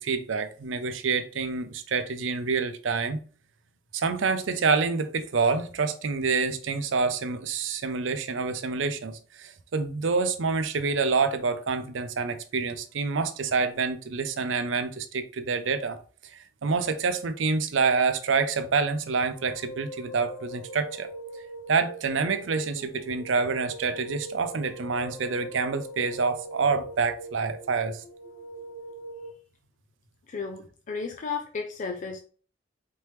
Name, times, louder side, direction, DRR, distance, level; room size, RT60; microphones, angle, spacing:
voice 1, 0.0-3.2 3.9-16.0 16.3-21.1 21.7-28.0, right 4 dB, 75° right, 0.5 m, -27 dB
sound 1, 19.1-29.3, right 1 dB, 90° left, 1.2 m, -42 dB
voice 2, 30.3-32.2, left 5 dB, 40° left, 0.4 m, -33 dB
4.3 x 3.3 x 3.1 m
head